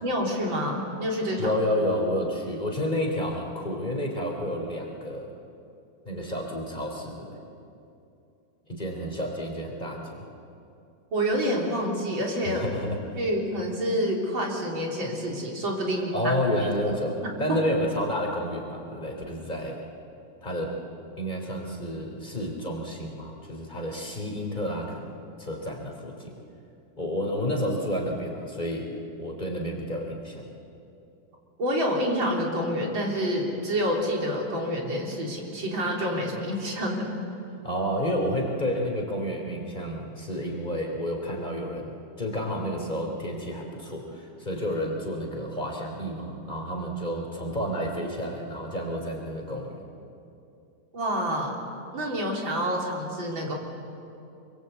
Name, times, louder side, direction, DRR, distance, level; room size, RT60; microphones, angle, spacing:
voice 1, 0.0-1.5 11.1-12.6 13.2-16.3 17.2-17.6 31.6-37.1 50.9-51.6 51.9-53.6, equal, 85° right, -1 dB, 4.4 m, -28 dB
voice 2, 1.4-5.3 6.1-7.4 8.7-10.2 12.5-13.0 16.1-19.8 20.4-20.8 21.2-26.3 27.0-28.9 29.2-30.4 37.6-49.8, equal, 25° left, 0 dB, 3.5 m, -30 dB
26.0 x 23.0 x 8.3 m, 2.7 s
omnidirectional pair, 2.0 m